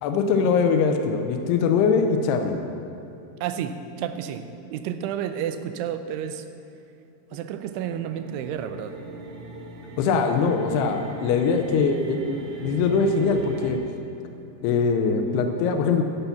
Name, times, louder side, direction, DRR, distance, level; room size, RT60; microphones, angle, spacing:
voice 1, 0.0-2.6 10.0-13.8 14.6-16.0, left 5 dB, 80° left, 5 dB, 2.7 m, -22 dB
voice 2, 3.4-6.5 7.3-9.0, right 9 dB, 85° right, 9 dB, 2.7 m, -31 dB
sound 1, 7.4-13.8, right 2 dB, 65° right, 2.0 m, -39 dB
15.0 x 5.8 x 6.9 m, 2.7 s
omnidirectional pair, 4.8 m